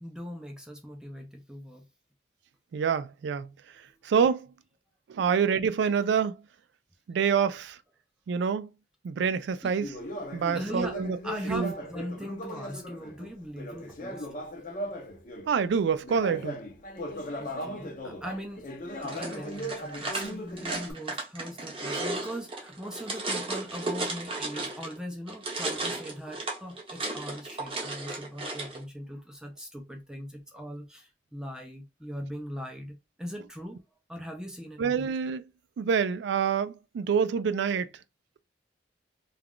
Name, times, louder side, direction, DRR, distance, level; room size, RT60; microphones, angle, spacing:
voice 1, 0.0-1.9 3.9-4.0 9.6-9.7 10.5-11.0 11.2-14.3 17.4-18.6 19.0-33.8 34.1-35.1, equal, 5° right, 0.4 m, -40 dB
voice 2, 2.7-3.5 4.0-4.5 5.1-6.4 7.1-7.8 8.3-8.7 9.0-9.9 10.3-11.2 11.5-11.7 15.5-16.6 34.8-35.4 35.8-37.9, right 6 dB, 75° right, 0.3 m, -26 dB
Conversation, 9.8-15.5 16.0-20.9, equal, 45° left, 0.6 m, -38 dB
sound 1, 19.0-25.0 25.3-28.8, right 2 dB, 30° right, 0.8 m, -34 dB
2.3 x 2.3 x 3.5 m
head